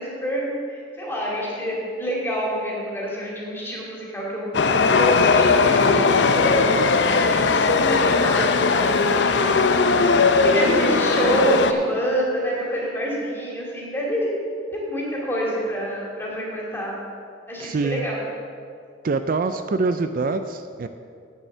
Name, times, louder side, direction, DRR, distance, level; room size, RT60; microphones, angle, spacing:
voice 1, 0.0-9.9 10.4-14.3 14.7-17.0 17.5-18.2, equal, 15° left, -4 dB, 2.5 m, -27 dB
Chatter / Subway metro underground, 4.5-11.7, left 4 dB, 85° left, 0.6 m, -18 dB
voice 2, 17.6-18.0 19.0-20.9, right 3 dB, 50° right, 9 dB, 0.4 m, -24 dB
9.0 x 7.6 x 6.7 m, 2.3 s
head